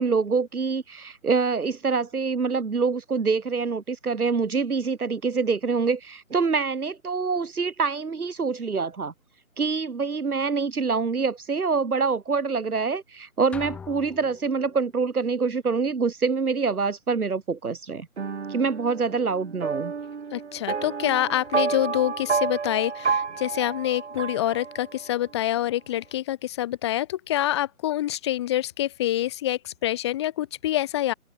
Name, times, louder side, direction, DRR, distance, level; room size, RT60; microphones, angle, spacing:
voice 1, 0.0-9.1 9.6-18.1 18.5-19.9, right 5 dB, 85° right, 1.6 m, -25 dB
sound 1, 13.5-15.0, left 6 dB, 5° left, 1.6 m, -42 dB
sound 2, 18.2-25.1, right 5 dB, 50° right, 3.4 m, -30 dB
voice 2, 20.3-31.1, left 13 dB, 20° left, 2.8 m, -26 dB
open air
figure-of-eight pair, 160°, 43 cm